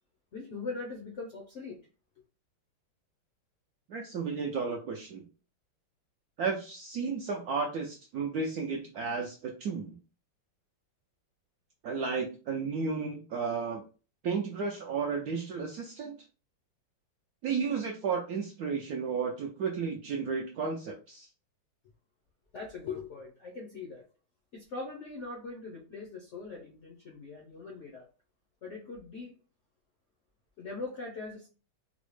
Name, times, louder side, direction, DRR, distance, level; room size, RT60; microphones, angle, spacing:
voice 1, 0.3-1.8 22.5-24.0 24.5-28.1 28.6-29.4 30.6-31.5, left 3 dB, 70° left, -2 dB, 0.7 m, -41 dB
voice 2, 3.9-5.2 6.4-9.9 11.8-13.8 14.2-16.2 17.4-21.3, right 5 dB, 75° right, 1 dB, 0.8 m, -33 dB
4.0 x 2.0 x 3.1 m, 0.35 s
omnidirectional pair, 2.1 m